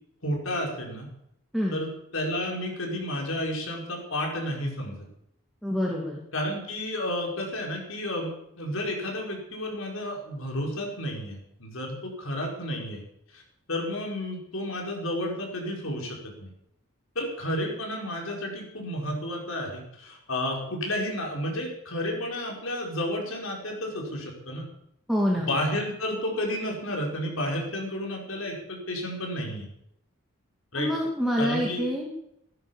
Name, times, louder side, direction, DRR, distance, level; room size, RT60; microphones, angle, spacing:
voice 1, 0.2-1.1 1.7-5.1 6.3-13.0 13.3-13.4 13.7-16.5 17.1-24.7 25.4-29.7 30.7-30.9 31.4-31.8, left 1 dB, 70° left, 0 dB, 4.9 m, -31 dB
voice 2, 5.6-6.2 25.1-25.5 30.8-32.1, equal, ahead, -3 dB, 2.3 m, -26 dB
16.0 x 11.0 x 7.2 m, 0.78 s
head